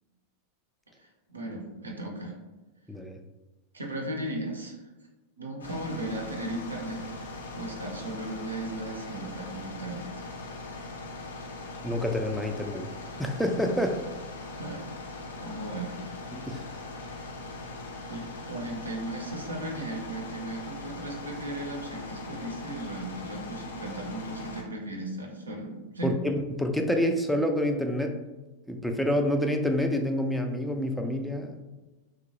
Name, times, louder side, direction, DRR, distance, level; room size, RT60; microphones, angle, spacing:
voice 1, 1.0-2.4 3.7-4.8 5.4-7.1 7.5-10.2 14.6-14.8 15.4-16.0 18.1-26.2, right 2 dB, 75° right, 0 dB, 0.5 m, -36 dB
voice 2, 2.9-3.2 11.8-12.9 13.2-14.0 16.3-16.6 26.0-28.2 28.7-31.6, left 1 dB, ahead, 4 dB, 0.3 m, -28 dB
sound 1, 5.6-24.6, left 2 dB, 75° left, 0.5 m, -40 dB
3.0 x 2.1 x 2.9 m, 1.1 s
figure-of-eight pair, 90°, 0 cm